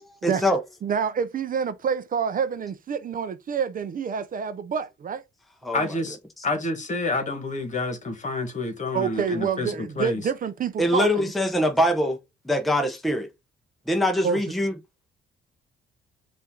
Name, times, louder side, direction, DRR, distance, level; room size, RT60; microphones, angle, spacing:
voice 1, 0.2-0.6 5.6-5.8 10.8-12.2 12.5-13.3 13.9-14.7, equal, ahead, 0.7 m, -23 dB
voice 2, 0.8-5.2 8.9-11.3 14.2-14.4, right 7 dB, 45° right, 0.5 m, -27 dB
voice 3, 5.7-6.2 6.4-10.3, left 2 dB, 40° left, 1.5 m, -28 dB
5.4 x 2.6 x 3.6 m
cardioid pair, 90°, 20 cm